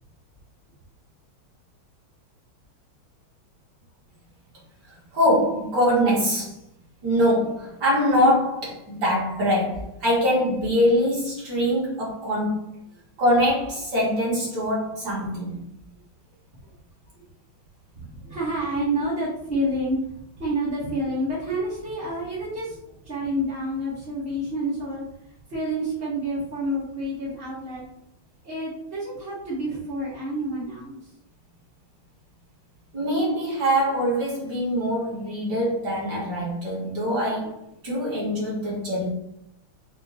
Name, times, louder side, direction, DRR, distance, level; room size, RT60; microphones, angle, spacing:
voice 1, 4.9-6.6 7.0-12.7 13.2-15.6 32.9-39.1, equal, 55° right, -6 dB, 2.0 m, -23 dB
voice 2, 17.9-25.1 25.5-27.8 28.4-31.1, right 1 dB, 40° right, -8 dB, 0.9 m, -29 dB
4.5 x 2.2 x 4.0 m, 0.78 s
omnidirectional pair, 2.3 m